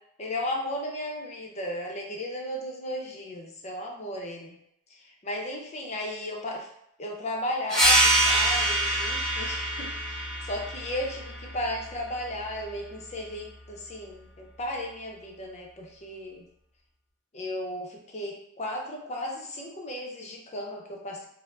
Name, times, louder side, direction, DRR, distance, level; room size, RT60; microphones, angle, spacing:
voice 1, 0.2-4.6 4.9-6.7 7.0-16.4 17.3-21.3, left 1 dB, 30° left, 0 dB, 0.6 m, -35 dB
sound 1, 7.7-12.9, right 1 dB, 5° left, 0.9 m, -26 dB
4.4 x 2.0 x 2.4 m, 0.74 s
head